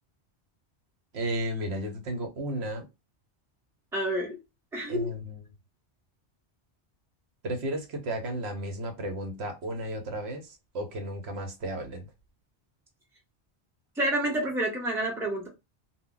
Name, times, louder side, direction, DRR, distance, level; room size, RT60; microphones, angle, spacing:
voice 1, 1.1-2.9 4.9-5.4 7.4-12.1, right 1 dB, 70° right, 0.9 m, -33 dB
voice 2, 3.9-4.4 4.7-5.1 14.0-15.5, right 1 dB, 5° right, 0.7 m, -28 dB
2.1 x 2.1 x 3.7 m
omnidirectional pair, 1.2 m